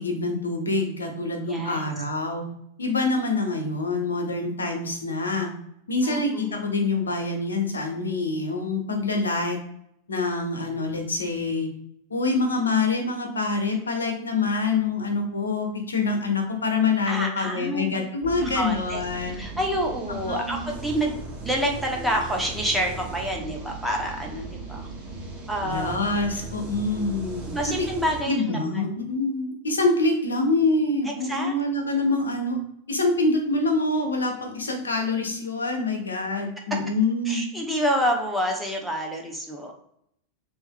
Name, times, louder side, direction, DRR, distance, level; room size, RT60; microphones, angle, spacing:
voice 1, 0.0-2.4 2.8-5.5 5.9-9.6 10.1-11.7 12.1-19.4 20.3-20.7 25.6-27.5 27.8-27.9 28.2-32.6 32.9-37.4, left 3 dB, 70° left, 3 dB, 0.9 m, -25 dB
voice 2, 1.5-1.8 6.0-6.6 17.1-18.0 18.4-19.0 19.3-24.9 25.5-26.0 26.4-26.5 27.5-29.0 31.2-31.5 31.9-32.0 37.2-39.7, equal, 5° right, -1 dB, 0.8 m, -28 dB
sound 1, 18.2-28.2, right 3 dB, 30° right, 1.1 m, -37 dB
3.3 x 3.1 x 2.2 m, 0.72 s
figure-of-eight pair, 90°, 0 cm